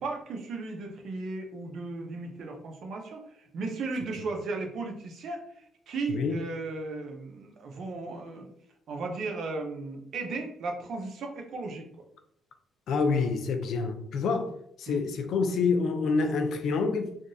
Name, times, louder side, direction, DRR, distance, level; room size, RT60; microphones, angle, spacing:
voice 1, 0.0-8.5 8.9-11.9 14.9-15.0, right 3 dB, 70° right, 0.7 m, -36 dB
voice 2, 12.9-14.5 14.8-17.1, left 4 dB, 75° left, 0.4 m, -27 dB
3.5 x 2.3 x 2.6 m
cardioid pair, 90°, 0 cm